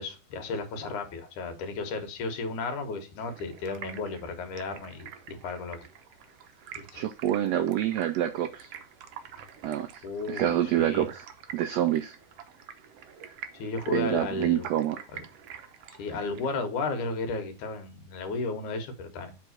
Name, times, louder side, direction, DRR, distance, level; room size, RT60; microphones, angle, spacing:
voice 1, 0.0-5.8 6.8-7.0 10.0-11.1 13.5-14.7 15.1-15.2 16.0-19.3, left 3 dB, 70° left, 2.7 m, -34 dB
Stream, 3.2-16.6, right 9 dB, 70° right, 1.6 m, -47 dB
voice 2, 6.9-8.7 9.6-10.0 10.3-11.3 11.5-12.1 13.9-15.0, right 12 dB, 90° right, 1.5 m, -27 dB
7.6 x 3.6 x 6.4 m
omnidirectional pair, 3.8 m